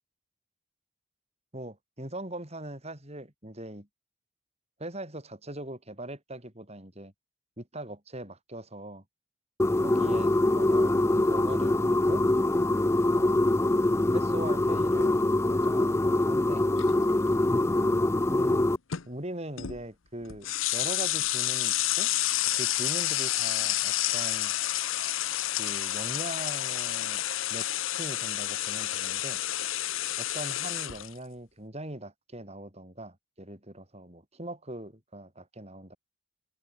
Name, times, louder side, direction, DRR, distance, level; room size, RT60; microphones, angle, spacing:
voice 1, 1.5-3.9 4.8-7.1 7.6-9.0 9.7-12.3 13.1-13.4 14.1-15.2 15.5-16.6 18.3-18.7 19.1-22.1 22.5-24.6 25.6-27.2 27.5-27.7 28.0-29.4 30.2-36.0, right 1 dB, 30° right, 5.2 m, -41 dB
sound 1, 9.6-18.8, left 1 dB, 15° left, 0.4 m, -24 dB
sound 2, 16.8-17.1 18.9-19.0 19.6-19.8 20.2-31.1, left 14 dB, 70° left, 0.9 m, -29 dB
head